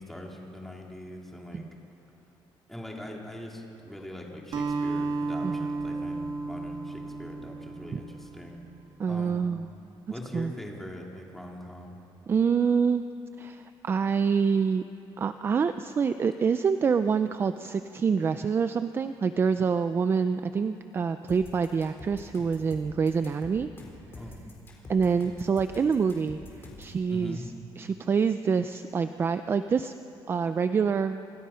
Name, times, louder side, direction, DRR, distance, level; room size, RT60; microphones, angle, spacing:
voice 1, 0.0-1.8 2.7-8.6 9.1-9.5 10.1-12.0 24.2-24.6 27.1-27.5, left 1 dB, 5° left, -1 dB, 2.7 m, -42 dB
Acoustic guitar, 4.5-9.0, right 3 dB, 50° right, 2.0 m, -33 dB
voice 2, 9.0-9.7 10.3-10.5 12.3-13.0 13.4-14.8 15.2-23.7 24.9-29.9 30.3-31.2, right 6 dB, 25° right, 10 dB, 0.4 m, -26 dB
sound 1, 21.3-27.0, left 2 dB, 25° left, 3.9 m, -46 dB
28.5 x 24.0 x 5.7 m, 2.8 s
cardioid pair, 175°, 9 cm